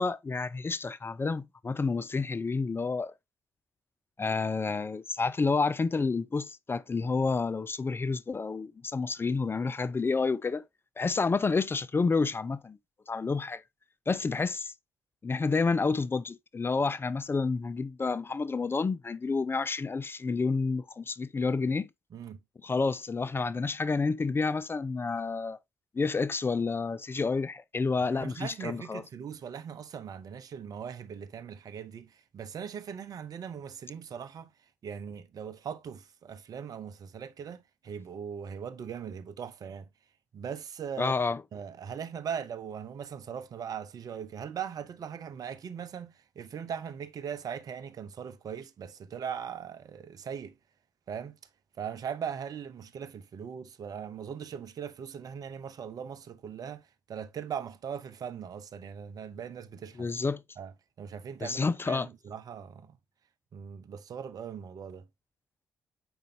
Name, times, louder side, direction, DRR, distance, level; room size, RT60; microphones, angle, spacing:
voice 1, 0.0-3.1 4.2-10.6 11.0-12.8 13.1-13.6 14.1-14.7 15.2-21.9 22.6-25.6 25.9-29.0 41.0-41.4 60.0-60.4 61.4-62.1, left 4 dB, 30° left, 0.5 m, -29 dB
voice 2, 28.0-34.5 34.8-39.9 40.3-41.1 41.5-50.5 51.1-51.4 51.8-60.1 60.6-60.7 61.0-63.0 63.5-65.1, right 7 dB, 55° right, 0.7 m, -40 dB
7.9 x 5.1 x 2.7 m
hypercardioid pair, 40°, 8 cm